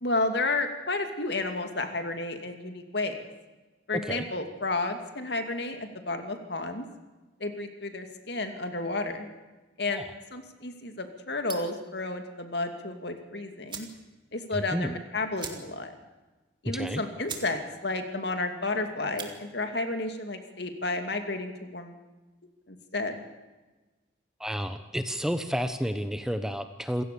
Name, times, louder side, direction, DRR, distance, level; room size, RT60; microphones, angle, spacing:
voice 1, 0.0-3.1 3.9-6.9 7.4-9.3 9.8-13.9 14.3-15.9 16.6-22.0 22.7-23.2, left 2 dB, 60° left, 6 dB, 2.6 m, -32 dB
sound 1, 11.4-11.8 13.2-13.3 13.6-14.0 14.4-14.5 14.7-14.9 15.3-15.9 16.3-16.4 16.9-17.0 17.2-17.5 17.9-18.2 19.0-19.3, right 6 dB, 25° right, 2.4 m, -40 dB
voice 2, 14.5-14.9 16.6-17.0 24.4-27.0, equal, 5° right, 9 dB, 1.0 m, -31 dB
27.5 x 16.5 x 6.9 m, 1.2 s
head